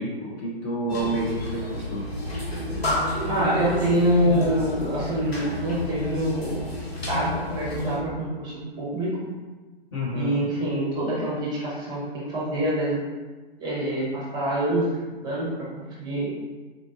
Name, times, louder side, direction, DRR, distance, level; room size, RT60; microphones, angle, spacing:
voice 1, 0.0-2.0 9.9-10.4, right 1 dB, 25° left, -5 dB, 0.7 m, -29 dB
sound 1, 0.9-8.0, left 1 dB, 75° left, 1.2 m, -30 dB
voice 2, 3.3-6.6 7.1-9.3 10.1-13.0 13.6-15.5 15.7-16.3, right 1 dB, 15° right, -6 dB, 0.9 m, -26 dB
3.8 x 2.5 x 3.5 m, 1.3 s
figure-of-eight pair, 125°, 31 cm